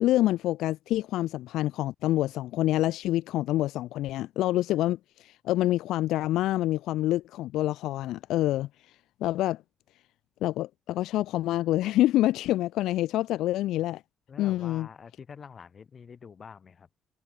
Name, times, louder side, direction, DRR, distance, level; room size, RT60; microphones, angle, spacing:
voice 1, 0.0-8.7 9.2-9.6 10.4-14.0 14.4-14.9, left 15 dB, 90° left, 0.3 m, -27 dB
voice 2, 14.3-16.9, left 6 dB, 45° left, 4.0 m, -46 dB
cardioid pair, 90°, 0 cm